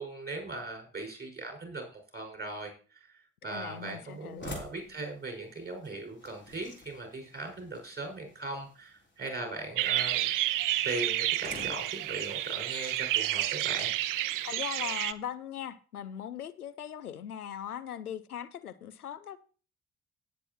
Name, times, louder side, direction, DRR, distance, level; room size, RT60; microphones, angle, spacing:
voice 1, 0.0-2.7 3.4-10.3 10.8-13.9, right 2 dB, 20° right, 5.4 m, -39 dB
voice 2, 3.4-4.5 14.4-19.4, left 9 dB, 85° left, 0.6 m, -40 dB
sound 1, 3.5-13.6, left 2 dB, 25° left, 3.6 m, -50 dB
sound 2, 9.8-15.1, right 14 dB, 45° right, 0.8 m, -30 dB
17.5 x 7.5 x 2.9 m
figure-of-eight pair, 45°, 44 cm